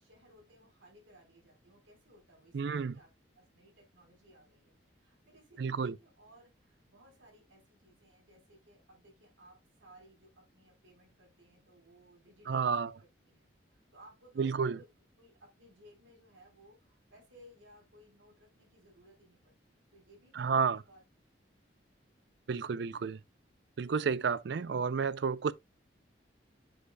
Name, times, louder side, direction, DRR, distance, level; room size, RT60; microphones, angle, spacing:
voice 1, 0.0-14.9 15.2-19.6 19.9-21.0, equal, 90° right, 4.0 m, -60 dB
voice 2, 2.5-2.9 5.6-6.0 12.5-12.9 14.4-14.8 20.3-20.8 22.5-23.2 23.8-25.5, right 5 dB, 65° right, 0.4 m, -31 dB
7.8 x 6.3 x 2.2 m
head